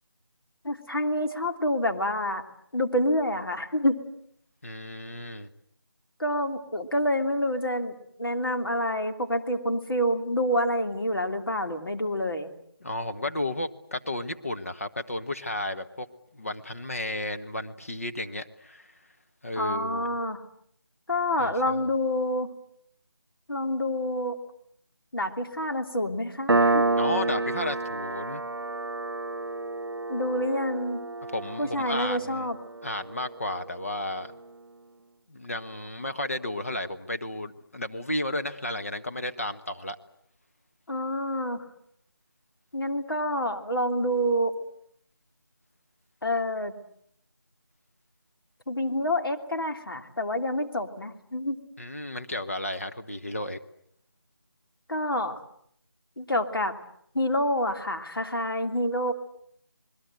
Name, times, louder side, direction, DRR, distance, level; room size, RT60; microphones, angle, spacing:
voice 1, 0.6-2.4 2.7-4.0 6.2-12.5 19.6-20.4 21.1-22.5 23.5-24.3 25.1-26.9 30.1-31.0 31.6-32.6 40.9-41.6 42.7-44.5 46.2-46.7 48.7-51.6 54.9-55.4 56.2-56.7 57.1-59.1, equal, 65° left, 5 dB, 3.1 m, -27 dB
voice 2, 4.6-5.5 12.8-16.1 16.3-18.9 19.4-20.1 21.4-21.9 27.0-28.4 31.3-32.5 32.8-34.3 35.3-40.0 51.8-53.6, left 1 dB, 35° left, 7 dB, 1.2 m, -33 dB
Piano, 26.5-33.7, right 3 dB, 70° right, 1.0 m, -29 dB
28.0 x 21.0 x 7.9 m, 0.68 s
figure-of-eight pair, 180°, 13 cm